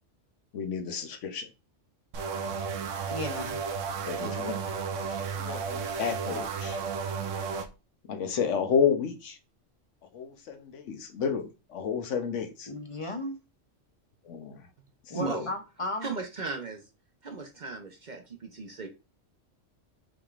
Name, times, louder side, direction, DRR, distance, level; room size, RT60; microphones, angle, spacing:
voice 1, 0.5-1.5 4.1-5.1 5.4-6.8 8.1-9.4 10.1-12.7 14.2-14.6 15.2-15.5, left 7 dB, 75° left, 1.1 m, -31 dB
sound 1, 2.1-7.7, right 5 dB, 80° right, 1.0 m, -33 dB
voice 2, 3.1-3.6 12.7-13.3 15.1-16.1, left 1 dB, 35° left, 0.6 m, -35 dB
voice 3, 15.1-15.5 16.0-16.9 17.2-18.9, right 4 dB, 45° right, 0.8 m, -36 dB
6.0 x 3.3 x 2.4 m
omnidirectional pair, 1.3 m